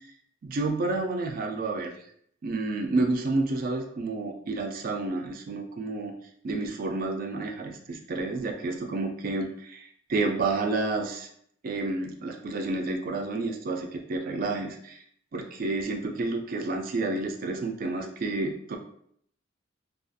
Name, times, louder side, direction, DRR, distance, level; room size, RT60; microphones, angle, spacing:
voice 1, 0.4-1.9 2.4-6.1 6.4-11.3 11.6-15.0 15.3-18.8, right 3 dB, 45° right, 4 dB, 0.3 m, -30 dB
2.4 x 2.3 x 2.5 m, 0.68 s
head